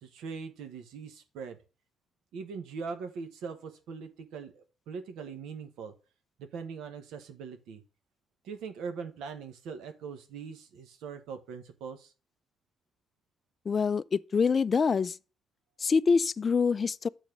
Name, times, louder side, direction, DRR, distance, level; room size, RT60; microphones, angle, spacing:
voice 1, 0.0-1.6 2.3-5.9 6.4-7.8 8.4-12.1, right 5 dB, 90° right, 1.1 m, -41 dB
voice 2, 13.7-15.2 15.8-17.1, left 5 dB, 40° left, 0.3 m, -25 dB
7.1 x 4.1 x 6.1 m
cardioid pair, 90°, 0 cm